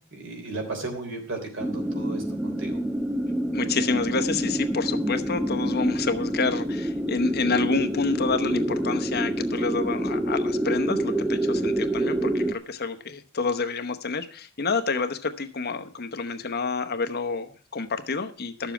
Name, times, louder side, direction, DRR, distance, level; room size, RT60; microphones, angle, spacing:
voice 1, 0.1-2.8, right 2 dB, 60° right, 3 dB, 3.4 m, -35 dB
sound 1, 1.6-12.5, right 1 dB, 5° right, 0.6 m, -27 dB
voice 2, 3.5-18.7, left 4 dB, 50° left, 9 dB, 1.0 m, -28 dB
11.5 x 7.2 x 5.8 m, 0.42 s
head